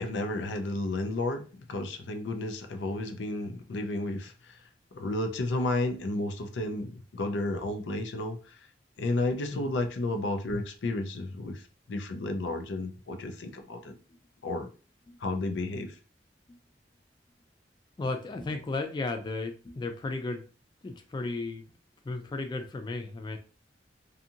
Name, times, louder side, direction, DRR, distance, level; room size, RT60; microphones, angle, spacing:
voice 1, 0.0-4.5 4.9-8.4 9.0-11.6 11.9-14.0 14.4-14.7 15.2-15.9, left 2 dB, 85° left, 0.5 m, -32 dB
voice 2, 18.0-20.4 20.8-21.6 22.0-23.4, left 3 dB, 25° left, 0.3 m, -34 dB
2.6 x 2.4 x 2.7 m
head